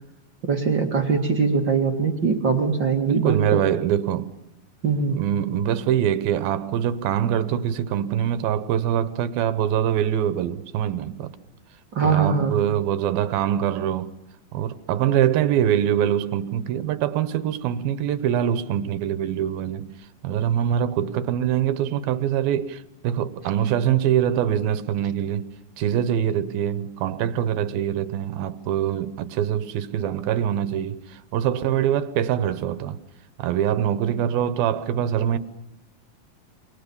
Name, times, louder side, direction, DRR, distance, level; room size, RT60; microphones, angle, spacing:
voice 1, 0.4-3.6 4.8-5.2 11.9-12.6, right 5 dB, 35° right, 2.3 m, -22 dB
voice 2, 3.1-4.3 5.1-11.4 12.0-14.1 14.5-19.9 20.2-25.5 25.8-33.0 33.4-35.4, right 10 dB, 80° right, 3.0 m, -24 dB
28.5 x 24.0 x 7.1 m
omnidirectional pair, 4.2 m